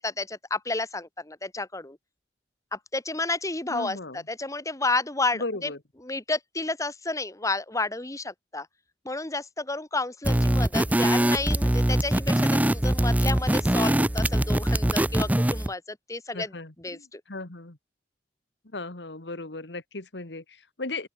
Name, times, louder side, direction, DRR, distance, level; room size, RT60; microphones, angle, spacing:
voice 1, 0.0-2.0 2.7-5.7 6.0-8.7 9.1-16.5 16.8-17.2, left 3 dB, 20° left, 1.9 m, -31 dB
voice 2, 3.7-4.2 5.3-5.8 16.3-17.8 18.7-21.1, left 2 dB, 85° left, 2.1 m, -36 dB
sound 1, 10.2-15.7, right 1 dB, 10° right, 0.5 m, -23 dB
open air
head